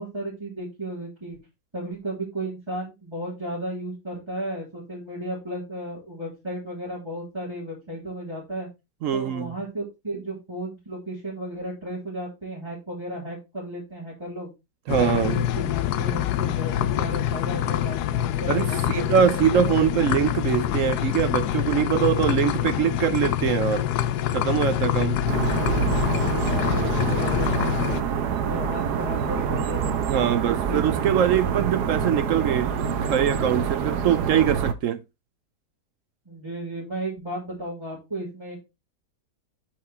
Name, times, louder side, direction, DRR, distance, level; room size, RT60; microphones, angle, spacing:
voice 1, 0.0-1.4 1.7-8.7 9.1-14.5 14.9-19.9 26.2-27.8 28.4-30.3 30.7-30.8 36.2-38.6, right 1 dB, 15° right, 3.3 m, -34 dB
voice 2, 9.0-9.5 14.9-15.4 18.5-23.9 24.3-25.2 30.1-35.0, right 9 dB, 65° right, 0.8 m, -23 dB
sound 1, 14.9-28.0, left 11 dB, 80° left, 1.1 m, -25 dB
sound 2, 25.3-34.7, right 7 dB, 80° right, 1.3 m, -26 dB
8.1 x 4.8 x 4.1 m
omnidirectional pair, 1.7 m